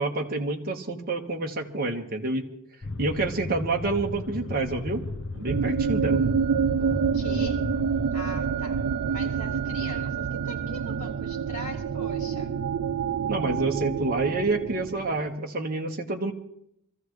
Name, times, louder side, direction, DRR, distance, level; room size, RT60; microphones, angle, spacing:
voice 1, 0.0-2.4 3.0-5.0 5.3-6.2 13.3-16.3, right 2 dB, 45° right, 0 dB, 1.4 m, -28 dB
sound 1, 2.8-8.1, left 3 dB, 50° left, 0.6 m, -35 dB
sound 2, 5.5-15.3, right 6 dB, 85° right, 0.5 m, -27 dB
voice 2, 6.8-7.6 8.1-8.8 9.1-12.5, left 1 dB, 35° left, -4 dB, 6.8 m, -41 dB
26.0 x 14.5 x 3.2 m, 0.74 s
head